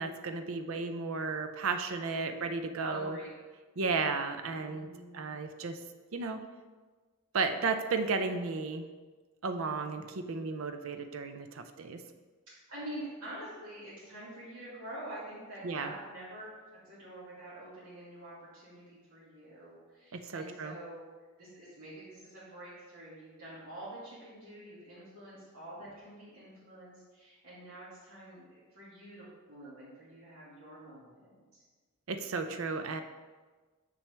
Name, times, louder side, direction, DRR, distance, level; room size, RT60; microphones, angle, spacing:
voice 1, 0.0-3.2 3.8-5.8 6.1-6.5 7.3-8.9 9.4-12.0 15.6-15.9 20.1-20.8 32.1-33.0, right 4 dB, 65° right, 8 dB, 0.5 m, -34 dB
voice 2, 1.9-3.3 4.4-5.4 12.5-16.5 16.8-21.0 21.4-31.6, right 1 dB, 80° right, -11 dB, 2.3 m, -47 dB
6.9 x 5.9 x 3.3 m, 1.4 s
head